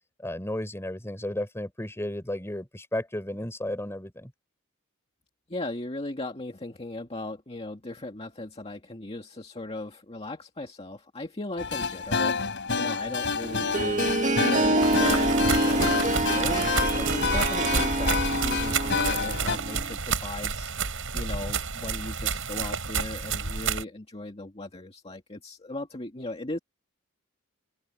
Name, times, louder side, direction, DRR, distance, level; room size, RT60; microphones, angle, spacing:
voice 1, 0.2-4.3, left 1 dB, 10° left, 5.1 m, -33 dB
voice 2, 5.5-14.1 14.5-26.6, left 2 dB, 30° left, 2.1 m, -38 dB
sound 1, 11.6-19.6, left 5 dB, 60° left, 5.0 m, -29 dB
Harp, 13.4-19.9, right 2 dB, 35° right, 2.2 m, -26 dB
sound 2, 14.8-23.8, right 5 dB, 65° right, 8.0 m, -30 dB
open air
head